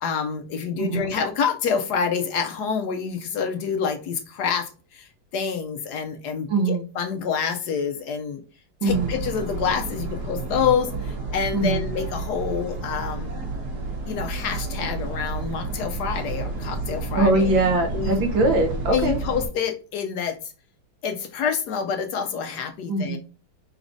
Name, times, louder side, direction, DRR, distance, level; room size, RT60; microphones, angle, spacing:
voice 1, 0.0-8.4 8.8-13.3 14.1-17.5 17.9-18.2 18.9-20.4 21.0-23.2, left 6 dB, 70° left, 6 dB, 1.1 m, -27 dB
voice 2, 0.8-1.1 6.5-6.9 8.8-9.2 11.5-11.9 17.1-19.2 22.9-23.2, right 2 dB, 85° right, 4 dB, 1.7 m, -22 dB
sound 1, 8.9-19.5, right 3 dB, 60° right, 1.5 m, -31 dB
4.7 x 4.0 x 2.6 m, 0.36 s
omnidirectional pair, 2.1 m